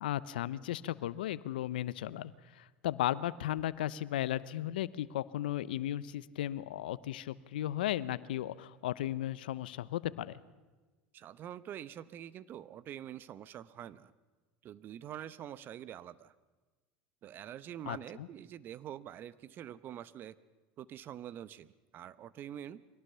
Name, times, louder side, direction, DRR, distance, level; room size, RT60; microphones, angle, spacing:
voice 1, 0.0-10.4 17.9-18.3, left 13 dB, 80° left, 18 dB, 0.8 m, -35 dB
voice 2, 11.1-14.1 14.6-16.3 17.2-20.3 20.8-22.8, right 10 dB, 45° right, 17 dB, 0.9 m, -46 dB
23.5 x 17.5 x 6.9 m, 1.3 s
hypercardioid pair, 95°, 5 cm